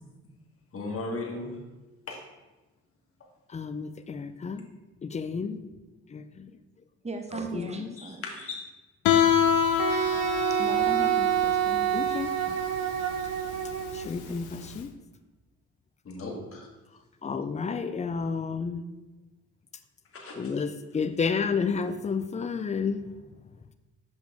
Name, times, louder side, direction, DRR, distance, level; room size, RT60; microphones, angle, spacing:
voice 1, 0.7-1.5 2.1-2.2 7.3-7.4 8.0-8.6 16.1-16.7 20.1-20.4, left 3 dB, 50° left, 0 dB, 1.6 m, -36 dB
voice 2, 3.5-4.7 5.0-5.6 6.1-6.5 7.5-8.0 11.9-12.3 13.9-14.9 17.2-18.9 20.3-23.1, left 5 dB, 25° left, 10 dB, 0.5 m, -31 dB
voice 3, 7.0-8.2 9.3-9.4 10.5-11.9 12.5-12.6, right 3 dB, 20° right, 5 dB, 1.0 m, -38 dB
Guitar, 9.0-14.7, left 8 dB, 90° left, 0.5 m, -27 dB
Wind instrument woodwind instrument, 9.8-14.1, right 10 dB, 60° right, 0.6 m, -27 dB
6.2 x 5.2 x 3.5 m, 1.1 s
supercardioid pair, 65°, 30 cm